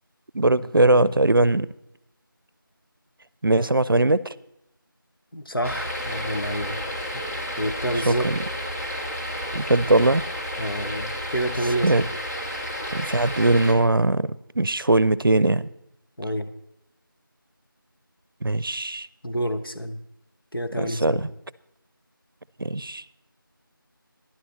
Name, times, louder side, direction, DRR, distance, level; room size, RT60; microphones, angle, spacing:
voice 1, 0.3-1.7 3.4-4.3 8.1-8.4 9.5-10.2 11.8-12.0 12.9-15.7 18.4-19.1 20.8-21.3 22.6-23.0, right 2 dB, 70° right, 19 dB, 0.5 m, -20 dB
voice 2, 5.3-6.8 7.1-7.2 7.5-8.3 10.6-12.1 16.2-16.5 19.2-20.0 20.5-21.3, right 1 dB, 75° left, 7 dB, 1.1 m, -28 dB
sound 1, 5.6-13.7, equal, 45° left, 1.9 m, -31 dB
11.0 x 11.0 x 4.2 m, 0.83 s
figure-of-eight pair, 180°, 12 cm